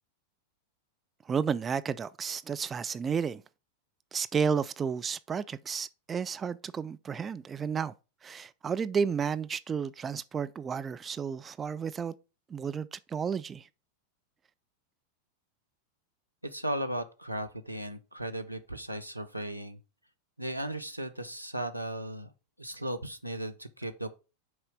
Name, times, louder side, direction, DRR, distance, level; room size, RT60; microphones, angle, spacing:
voice 1, 1.3-3.4 4.1-7.9 8.2-12.1 12.5-13.7, right 6 dB, 20° right, 0.3 m, -32 dB
voice 2, 16.4-19.8 20.4-22.3 22.6-24.1, right 1 dB, 90° right, 0.7 m, -36 dB
6.4 x 4.3 x 5.1 m
figure-of-eight pair, 90°, 0 cm